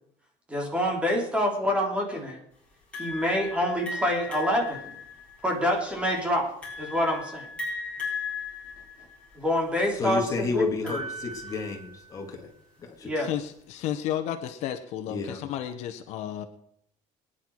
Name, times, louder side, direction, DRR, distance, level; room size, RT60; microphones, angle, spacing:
voice 1, 0.5-2.4 3.0-4.9 5.4-7.5 9.4-11.0 13.0-13.3, equal, 10° right, 1 dB, 3.4 m, -27 dB
sound 1, 2.9-12.2, left 3 dB, 10° left, 6.7 m, -37 dB
voice 2, 10.0-12.4 12.8-13.1 15.1-15.4, left 4 dB, 25° left, 3 dB, 2.7 m, -31 dB
voice 3, 13.2-16.4, left 10 dB, 65° left, 8 dB, 1.4 m, -32 dB
23.0 x 10.5 x 4.8 m, 0.69 s
cardioid pair, 175°, 13 cm